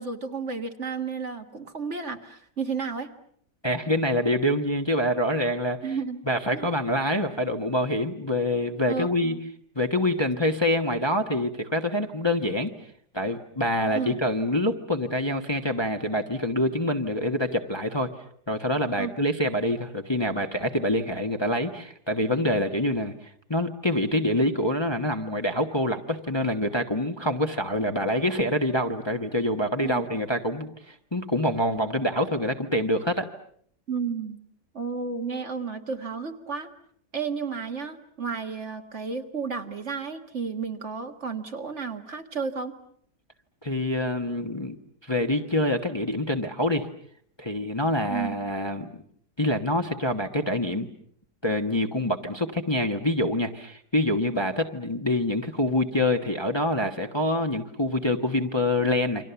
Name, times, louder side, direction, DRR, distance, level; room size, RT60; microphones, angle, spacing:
voice 1, 0.0-3.1 5.8-6.2 6.5-6.7 8.9-9.4 13.9-14.2 19.0-19.1 29.8-30.0 33.9-34.4 34.7-36.7 37.1-42.8 48.1-48.4, right 5 dB, 45° right, 6 dB, 1.9 m, -32 dB
voice 2, 3.6-6.0 6.3-9.3 9.7-12.7 13.1-18.1 18.5-33.3 43.6-44.8 45.0-46.9 47.4-48.9 49.4-50.9 51.4-59.2, left 1 dB, 15° left, 4 dB, 1.2 m, -26 dB
29.5 x 25.0 x 7.0 m, 0.63 s
omnidirectional pair, 1.7 m